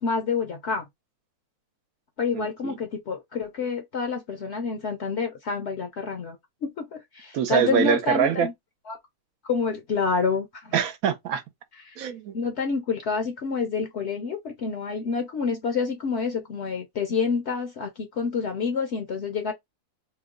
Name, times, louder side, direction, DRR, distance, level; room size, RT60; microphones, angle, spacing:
voice 1, 0.0-0.8 2.2-6.4 6.6-8.5 8.9-9.0 9.4-10.8 11.8-12.0 12.3-19.5, left 5 dB, 60° left, 0.8 m, -28 dB
voice 2, 2.3-2.8 7.3-8.5 10.7-11.4 12.0-12.4, right 8 dB, 75° right, 1.1 m, -24 dB
3.0 x 2.2 x 3.6 m
omnidirectional pair, 1.6 m